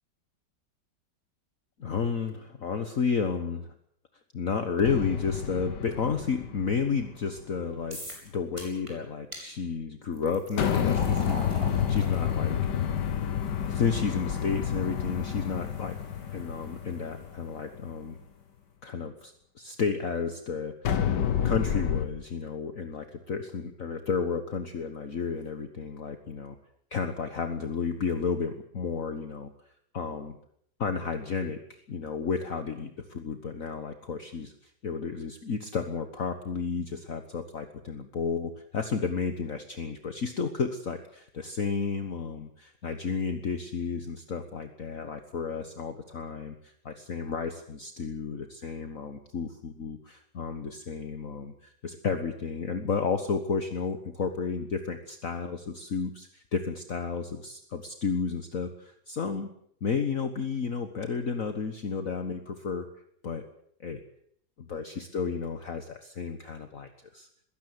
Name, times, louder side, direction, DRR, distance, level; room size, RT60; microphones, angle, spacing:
voice 1, 1.8-3.7 4.3-12.9 13.7-16.0 16.3-18.2 18.8-21.0 21.4-26.6 26.9-29.5 29.9-30.4 30.8-59.5 59.8-62.9 63.2-63.5 63.8-64.0 64.6-67.3, left 5 dB, 50° left, 7 dB, 1.7 m, -32 dB
sound 1, 4.8-7.4 10.6-17.8 20.9-22.1, left 8 dB, 70° left, 1.9 m, -29 dB
sound 2, 7.9-8.3 8.6-8.9 9.3-9.4 10.1-17.3, equal, 15° right, 7.3 m, -45 dB
22.0 x 17.0 x 8.1 m, 0.67 s
omnidirectional pair, 2.0 m